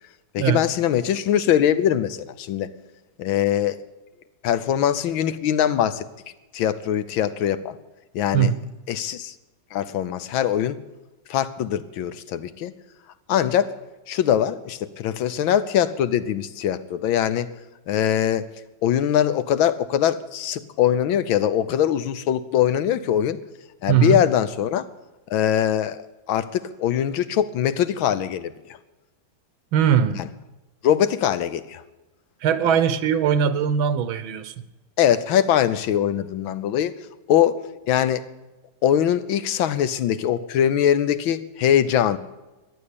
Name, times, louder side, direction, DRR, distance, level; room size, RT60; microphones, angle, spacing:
voice 1, 0.3-2.7 3.2-3.8 4.4-6.1 6.5-7.8 8.1-8.5 8.9-9.3 9.7-10.8 11.3-12.7 13.3-13.7 14.1-17.5 17.9-18.5 18.8-23.4 23.8-24.8 25.3-26.0 26.3-28.5 30.2-30.3 30.8-31.8 35.0-36.9 37.3-37.6 37.9-38.3 38.8-42.2, left 10 dB, 85° left, 14 dB, 1.6 m, -22 dB
voice 2, 23.9-24.2 29.7-30.2 32.4-34.5, right 8 dB, 90° right, 13 dB, 1.7 m, -20 dB
14.0 x 10.5 x 8.5 m, 1.1 s
omnidirectional pair, 2.1 m